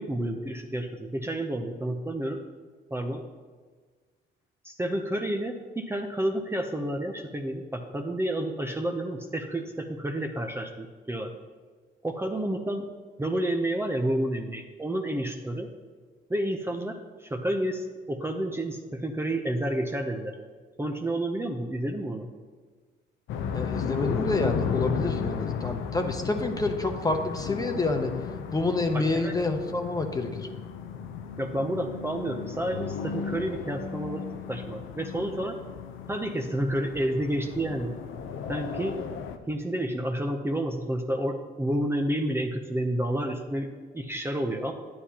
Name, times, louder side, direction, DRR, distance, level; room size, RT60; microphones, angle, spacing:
voice 1, 0.0-2.4 2.9-3.2 4.6-11.3 12.0-12.9 13.2-15.7 16.3-20.3 20.8-22.3 28.9-29.4 31.4-35.6 36.1-38.0 38.5-39.0 39.5-43.7 43.9-44.7, right 1 dB, 10° right, 3 dB, 0.7 m, -30 dB
sound 1, 23.3-39.4, left 7 dB, 85° left, 0.7 m, -34 dB
voice 2, 23.5-28.1 28.5-30.5, left 2 dB, 20° left, 5 dB, 0.9 m, -28 dB
9.8 x 9.4 x 2.9 m, 1.5 s
cardioid pair, 90°, 20 cm